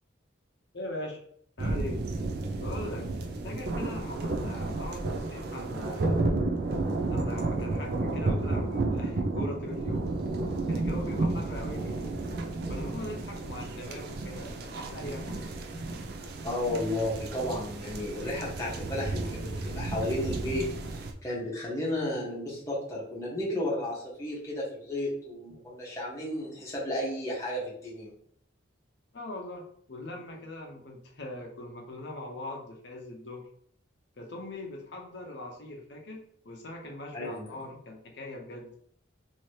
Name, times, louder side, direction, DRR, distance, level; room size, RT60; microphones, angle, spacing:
voice 1, 0.7-1.2 1.6-2.0 2.6-3.1 3.4-6.2 7.1-10.1 10.7-12.2 12.7-16.0 29.1-33.4 34.2-38.7, left 1 dB, 60° left, 1 dB, 0.7 m, -41 dB
sound 1, 1.6-21.1, right 2 dB, 50° right, 0.4 m, -32 dB
voice 2, 16.4-28.1 37.1-37.5, left 1 dB, 15° left, -7 dB, 1.1 m, -33 dB
2.9 x 2.8 x 3.1 m, 0.63 s
head